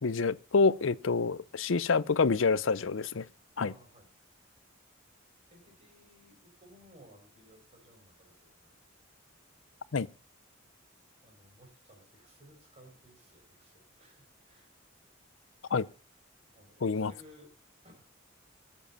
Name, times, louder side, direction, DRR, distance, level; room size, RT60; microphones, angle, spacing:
voice 1, 0.0-3.3 3.6-3.7 9.9-10.1 15.7-15.9 16.8-17.1, left 4 dB, 70° left, 0.6 m, -27 dB
voice 2, 3.6-4.1 5.5-8.7 9.3-9.4 11.2-14.7 16.5-17.5 17.8-18.0, equal, 30° right, 5.5 m, -58 dB
15.5 x 7.4 x 5.6 m
head